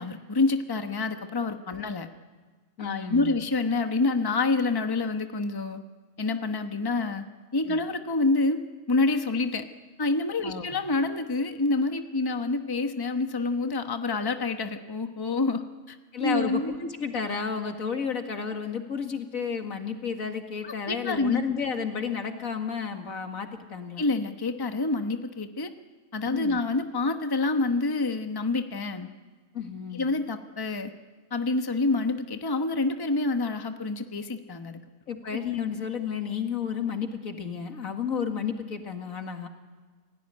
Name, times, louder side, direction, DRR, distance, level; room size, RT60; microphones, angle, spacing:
voice 1, 0.0-2.1 2.8-5.8 6.2-7.2 7.5-8.6 8.9-9.7 10.0-15.6 15.9-16.0 16.2-16.7 20.6-21.4 24.0-25.7 26.1-29.1 29.9-30.9 31.3-34.8, left 3 dB, 20° left, 7 dB, 1.1 m, -27 dB
voice 2, 2.8-3.4 7.7-7.8 10.4-10.7 16.1-24.1 26.3-26.6 29.5-30.1 35.1-39.5, left 6 dB, 80° left, 5 dB, 2.4 m, -32 dB
28.0 x 17.5 x 9.9 m, 1.4 s
omnidirectional pair, 1.4 m